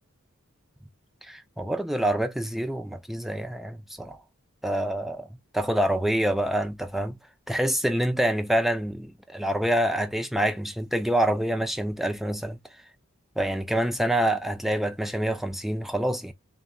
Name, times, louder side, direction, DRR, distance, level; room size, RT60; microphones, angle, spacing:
voice 1, 1.2-4.2 4.6-5.3 5.5-7.2 7.5-12.6 13.4-16.3, right 1 dB, ahead, 0.3 m, -26 dB
3.4 x 2.1 x 2.2 m
head